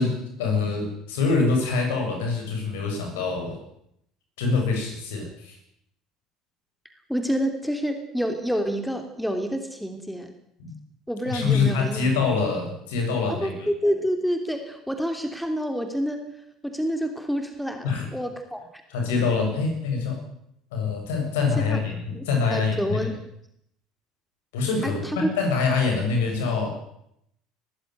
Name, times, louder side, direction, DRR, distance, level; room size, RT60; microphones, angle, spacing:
voice 1, 0.0-3.6 4.4-5.6 10.6-10.7 11.3-13.7 17.8-18.1 18.9-20.2 20.7-23.1 24.5-26.7, left 4 dB, 65° left, 3 dB, 7.4 m, -25 dB
voice 2, 7.1-10.3 11.1-12.1 13.4-16.3 16.6-18.6 21.7-21.8 22.1-22.2 22.5-23.1 24.8-24.9 25.2-25.3, equal, ahead, 6 dB, 3.1 m, -28 dB
21.0 x 15.0 x 9.4 m, 0.76 s
figure-of-eight pair, 60°, 0 cm